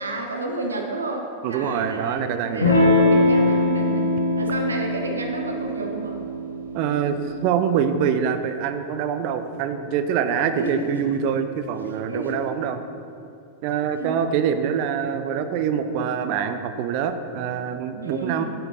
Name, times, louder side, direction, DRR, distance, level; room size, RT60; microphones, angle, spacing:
voice 1, 0.0-4.1 4.4-6.2 10.5-11.1 12.1-12.4 13.8-14.2 18.0-18.4, right 2 dB, 75° right, 2 dB, 1.1 m, -31 dB
voice 2, 1.4-2.7 6.7-7.2 7.4-12.8 13.6-18.4, right 7 dB, 45° right, 9 dB, 0.6 m, -25 dB
Electric guitar / Strum, 2.6-7.7, left 1 dB, 75° left, 1.2 m, -22 dB
8.1 x 7.0 x 5.5 m, 2.5 s
figure-of-eight pair, 90°, 0 cm